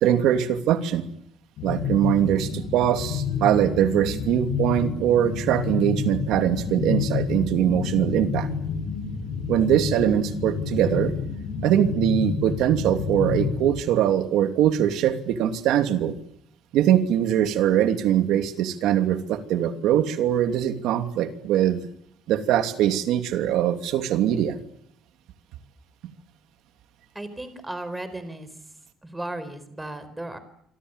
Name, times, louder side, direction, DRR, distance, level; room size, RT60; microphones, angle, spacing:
voice 1, 0.0-1.1 1.6-8.5 9.5-11.1 11.6-16.1 16.7-21.8 22.3-24.6 26.0-26.1, right 10 dB, 85° right, 8 dB, 2.9 m, -22 dB
sound 1, 1.6-13.8, left 6 dB, 80° left, 7.4 m, -29 dB
voice 2, 27.1-28.5 29.0-30.4, right 1 dB, 10° right, 12 dB, 4.5 m, -35 dB
27.0 x 25.0 x 8.3 m, 0.69 s
cardioid pair, 140°, 0 cm